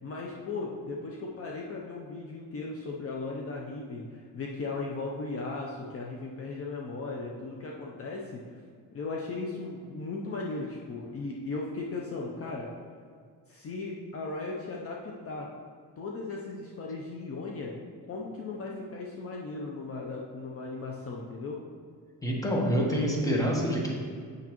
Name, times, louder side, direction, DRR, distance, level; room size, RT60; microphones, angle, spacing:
voice 1, 0.0-8.4 8.9-12.7 13.5-15.5 16.0-17.8 18.1-21.6, left 3 dB, 45° left, -1 dB, 0.6 m, -37 dB
voice 2, 22.2-24.0, equal, 10° left, -2 dB, 1.1 m, -27 dB
8.3 x 6.3 x 3.0 m, 2.1 s
cardioid pair, 165°, 33 cm